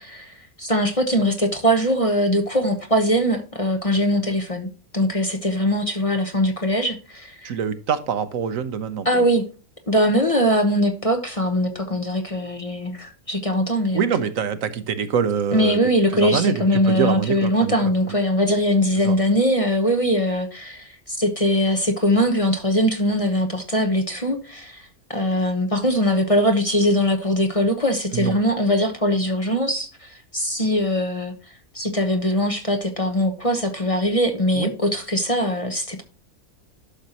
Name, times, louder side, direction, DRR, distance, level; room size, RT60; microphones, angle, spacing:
voice 1, 0.0-7.5 9.0-9.5 9.9-14.1 15.5-36.0, equal, 25° left, 4 dB, 1.0 m, -21 dB
voice 2, 7.4-9.1 13.9-15.8 16.1-17.7 18.1-18.2 19.0-19.2 28.1-28.4 34.5-34.7, right 7 dB, 70° right, 10 dB, 1.2 m, -24 dB
11.5 x 6.5 x 2.9 m, 0.35 s
omnidirectional pair, 1.5 m